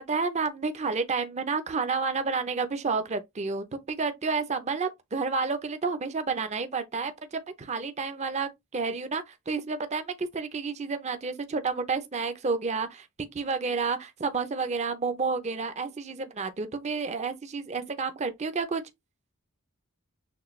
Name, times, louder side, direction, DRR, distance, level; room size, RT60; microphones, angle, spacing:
voice 1, 0.1-13.1 13.3-18.8, right 4 dB, 30° right, 0.5 m, -30 dB
6.5 x 2.3 x 3.1 m
head